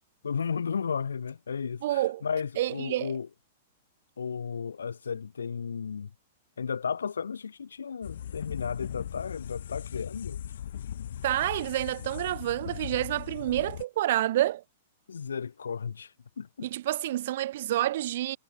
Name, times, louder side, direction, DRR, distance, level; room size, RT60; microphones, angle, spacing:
voice 1, 0.2-3.3 4.2-6.1 6.6-10.4 15.1-16.7, left 6 dB, 90° left, 5.9 m, -34 dB
voice 2, 1.8-2.2 2.6-3.1 11.2-14.6 16.6-18.4, right 14 dB, 60° right, 0.9 m, -28 dB
sound 1, 8.0-13.8, left 10 dB, 75° left, 2.2 m, -39 dB
hypercardioid pair, 120°, 0 cm